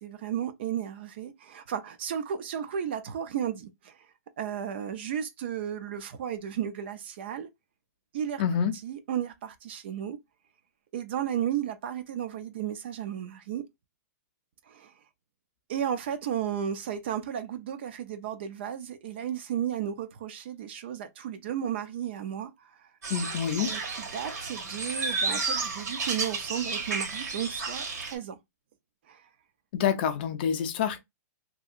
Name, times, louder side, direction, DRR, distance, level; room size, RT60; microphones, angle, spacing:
voice 1, 0.0-4.0 4.4-7.5 8.1-8.4 8.7-10.2 10.9-13.6 14.7-14.9 15.7-22.9 23.6-28.4 29.1-29.3, right 9 dB, 40° right, 0.3 m, -34 dB
voice 2, 8.4-8.7 23.1-23.7 29.7-31.0, left 8 dB, 35° left, 0.4 m, -27 dB
sound 1, 23.0-28.1, right 4 dB, 75° right, 1.3 m, -32 dB
2.7 x 2.7 x 2.4 m
hypercardioid pair, 170°, 9 cm